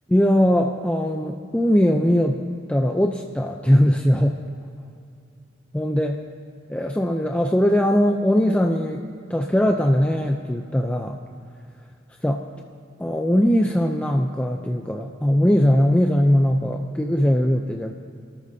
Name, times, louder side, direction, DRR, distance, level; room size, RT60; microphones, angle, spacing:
voice 1, 0.1-2.4 2.7-4.4 5.7-6.2 6.7-9.0 9.3-11.2 12.2-12.4 13.0-17.9, equal, 5° left, 3 dB, 0.4 m, -20 dB
28.5 x 13.0 x 2.7 m, 2.4 s
head